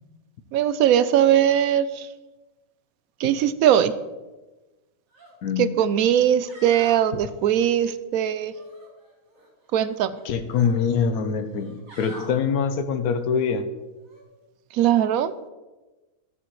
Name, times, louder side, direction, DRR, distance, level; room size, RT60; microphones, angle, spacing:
voice 1, 0.5-2.1 3.2-3.9 5.6-8.5 9.7-10.1 14.7-15.3, right 10 dB, 80° right, 13 dB, 1.0 m, -20 dB
sound 1, 5.1-5.3 5.7-5.8 6.3-7.1 8.5-9.5 9.8-10.8 11.5-12.3 14.0-14.2, equal, 65° right, 2.4 m, -45 dB
voice 2, 5.4-5.7 10.2-13.7, left 6 dB, 85° left, 9 dB, 1.3 m, -24 dB
13.5 x 8.3 x 3.2 m, 1.2 s
omnidirectional pair, 1.5 m